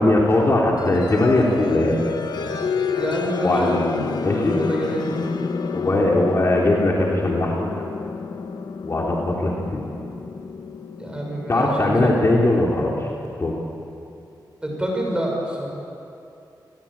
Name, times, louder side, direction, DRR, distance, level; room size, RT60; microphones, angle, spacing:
voice 1, 0.0-2.1 3.4-3.8 4.2-4.6 5.7-7.8 8.8-9.8 11.5-13.1 13.4-13.6, left 2 dB, 35° left, -2 dB, 3.6 m, -20 dB
sound 1, 0.8-13.3, left 5 dB, 65° left, 1.6 m, -30 dB
voice 2, 3.0-5.2 11.0-12.2 14.6-15.7, right 1 dB, 10° right, -1 dB, 6.6 m, -27 dB
30.0 x 22.0 x 8.9 m, 2.7 s
wide cardioid pair, 170°, 8 cm